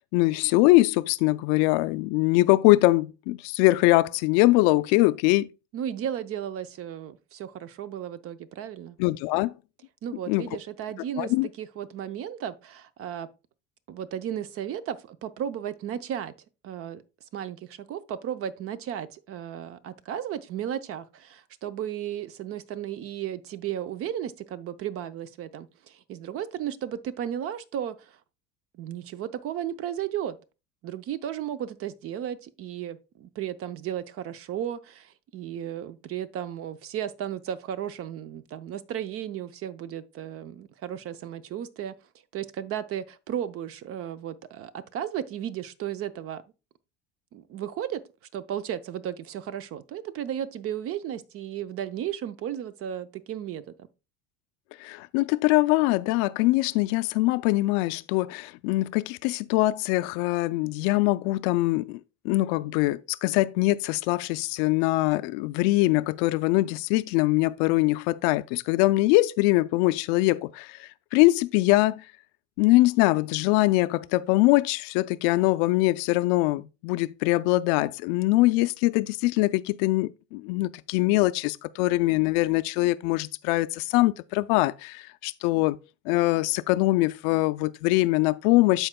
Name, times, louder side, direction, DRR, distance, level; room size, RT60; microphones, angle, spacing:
voice 1, 0.1-5.5 9.0-9.5 10.3-10.5 11.2-11.5 54.8-62.0 62.2-72.0 72.6-85.8 86.1-88.9, left 19 dB, 70° left, 0.5 m, -23 dB
voice 2, 5.7-9.0 10.0-13.3 13.9-16.3 16.6-17.0 17.3-28.2 28.8-30.4 30.8-42.0 42.3-46.4 47.3-48.0 48.3-53.9, right 10 dB, 40° right, 0.6 m, -34 dB
13.5 x 4.5 x 2.2 m
supercardioid pair, 125°, 34 cm